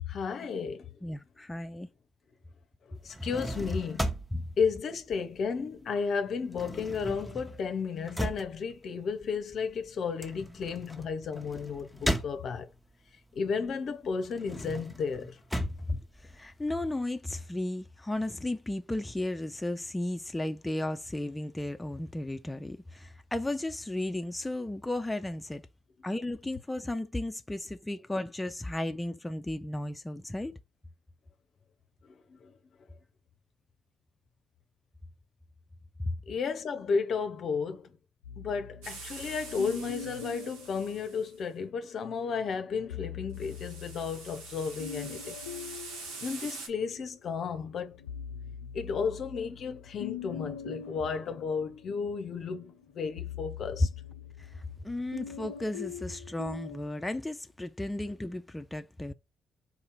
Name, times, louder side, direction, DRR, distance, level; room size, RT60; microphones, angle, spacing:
voice 1, 0.1-0.9 3.0-4.1 4.6-12.7 13.4-15.4 32.3-32.5 36.3-37.9 38.4-45.3 46.2-48.0 48.7-53.9, left 5 dB, 55° left, 0.6 m, -33 dB
voice 2, 1.0-1.9 4.3-4.4 15.6-25.6 26.0-30.6 36.0-36.1 54.5-59.1, left 1 dB, 15° left, 0.5 m, -34 dB
sound 1, 3.0-5.8 6.1-12.9 13.4-16.9, right 1 dB, 5° right, 0.8 m, -37 dB
sound 2, 38.2-41.7 42.7-47.1 47.6-56.8, left 8 dB, 90° left, 0.3 m, -43 dB
Sand blown by the wind, 38.8-41.3 43.3-46.7, right 4 dB, 80° right, 1.0 m, -45 dB
4.0 x 2.8 x 4.5 m
hypercardioid pair, 45°, 0 cm